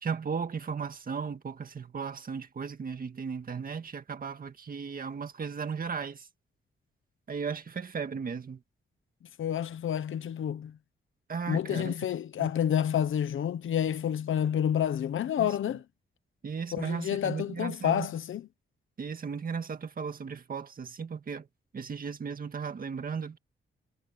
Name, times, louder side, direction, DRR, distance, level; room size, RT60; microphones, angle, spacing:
voice 1, 0.0-6.3 7.3-8.6 11.3-11.9 12.4-12.5 15.4-15.6 16.4-18.1 19.0-21.5 21.7-23.4, right 6 dB, 45° right, 1.9 m, -36 dB
voice 2, 9.4-10.8 11.5-15.8 16.7-18.5, left 9 dB, 85° left, 1.1 m, -29 dB
wide cardioid pair, 125°, 20 cm